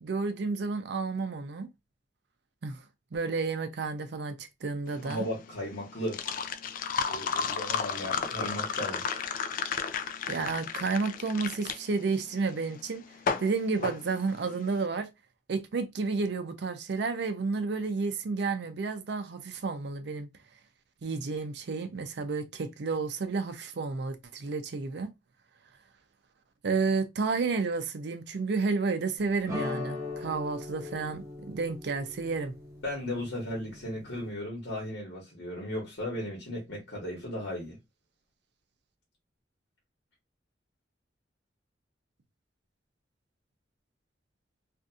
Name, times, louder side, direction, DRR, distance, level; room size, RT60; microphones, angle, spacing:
voice 1, 0.0-1.7 2.6-2.8 3.1-5.3 10.3-13.0 13.4-15.1 15.5-20.3 21.0-25.1 26.6-32.5, right 4 dB, 65° right, 0.5 m, -31 dB
sound 1, 4.9-14.8, left 6 dB, 50° left, 0.3 m, -33 dB
voice 2, 5.0-6.2 7.1-9.2 32.8-37.8, left 1 dB, 75° left, 1.2 m, -36 dB
sound 2, 29.5-34.3, left 3 dB, 15° right, 1.1 m, -40 dB
2.7 x 2.5 x 2.3 m
head